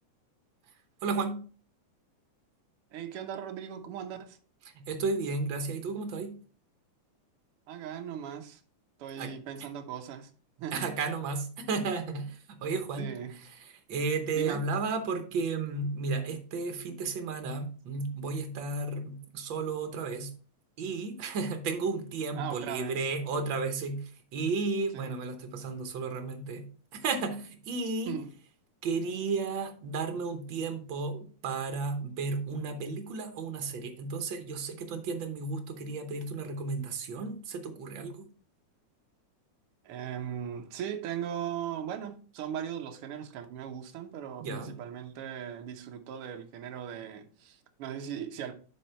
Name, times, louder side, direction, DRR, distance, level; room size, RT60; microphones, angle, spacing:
voice 1, 1.0-1.4 4.8-6.4 9.2-9.3 10.7-13.1 13.9-20.3 20.8-26.7 26.9-28.2 28.8-38.3 44.4-44.8, right 4 dB, 85° right, 1.0 m, -33 dB
voice 2, 2.9-4.4 7.7-8.6 9.0-10.3 10.6-10.8 13.0-13.5 14.3-14.7 22.3-23.1 24.9-25.1 28.0-28.3 39.8-48.5, right 9 dB, 65° right, 1.5 m, -38 dB
10.0 x 3.8 x 4.4 m
omnidirectional pair, 3.5 m